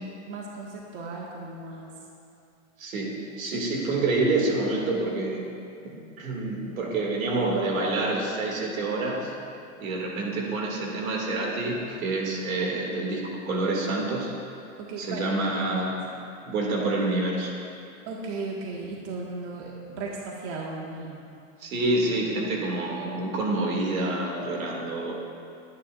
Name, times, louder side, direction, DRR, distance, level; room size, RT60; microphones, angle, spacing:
voice 1, 0.3-1.9 3.5-3.6 14.8-15.2 18.1-21.2, right 3 dB, 60° right, -3 dB, 2.0 m, -36 dB
voice 2, 2.8-5.5 5.8-9.3 9.8-14.3 15.0-16.0 16.4-17.5 21.6-25.1, right 2 dB, 90° right, -1 dB, 2.8 m, -27 dB
23.0 x 10.5 x 2.7 m, 2.5 s
supercardioid pair, 130°, 40 cm